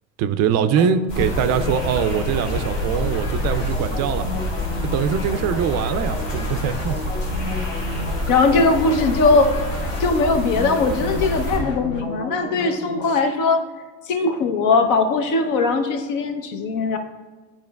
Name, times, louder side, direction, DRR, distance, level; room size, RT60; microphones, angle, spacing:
voice 1, 0.2-4.3 4.8-7.0 7.5-7.7, right 8 dB, 45° right, 10 dB, 0.4 m, -22 dB
sound 1, 0.6-13.2, left 2 dB, 40° left, 1.3 m, -34 dB
sound 2, 1.1-11.6, left 1 dB, 90° left, 1.6 m, -27 dB
voice 2, 8.3-9.5 10.0-13.6 14.1-17.0, left 3 dB, 55° left, 6 dB, 0.8 m, -20 dB
9.8 x 4.3 x 2.3 m, 1.3 s
hypercardioid pair, 85°, 36 cm